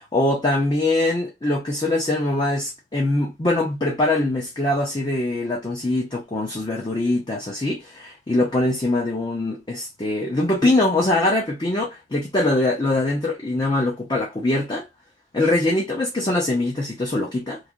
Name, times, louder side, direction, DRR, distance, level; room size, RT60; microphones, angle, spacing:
voice 1, 0.0-14.9 15.3-17.6, left 2 dB, 25° left, 0.6 m, -23 dB
3.2 x 2.5 x 2.3 m
head